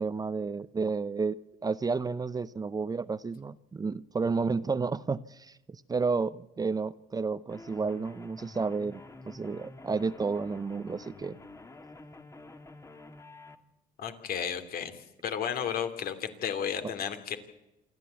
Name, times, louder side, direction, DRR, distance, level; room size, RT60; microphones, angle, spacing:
voice 1, 0.0-1.4 1.6-9.0 9.2-11.4 16.8-16.9, right 4 dB, 20° right, 15 dB, 0.7 m, -31 dB
sound 1, 7.5-13.6, left 2 dB, 15° left, 1.7 m, -49 dB
voice 2, 14.0-14.9 15.2-17.4, left 8 dB, 60° left, 8 dB, 2.9 m, -33 dB
27.0 x 12.5 x 8.3 m, 0.97 s
cardioid pair, 110°, 17 cm